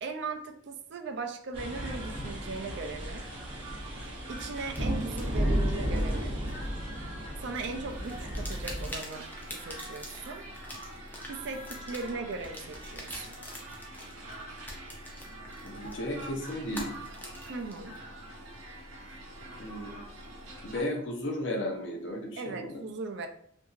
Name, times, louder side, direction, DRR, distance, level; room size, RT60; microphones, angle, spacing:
voice 1, 0.0-3.3 4.3-6.4 7.4-10.5 11.2-13.4 17.5-18.0 22.4-23.3, right 4 dB, 60° right, 6 dB, 0.3 m, -38 dB
sound 1, 1.5-8.9, equal, 25° right, 0.8 m, -33 dB
sound 2, 1.6-20.8, right 1 dB, 85° right, 0.7 m, -45 dB
sound 3, 4.4-7.1 7.4-18.0, left 1 dB, 10° left, 0.4 m, -46 dB
voice 2, 15.6-16.9 19.6-20.0 20.6-22.8, left 1 dB, 60° left, 1 dB, 0.6 m, -34 dB
2.8 x 2.6 x 2.4 m, 0.63 s
head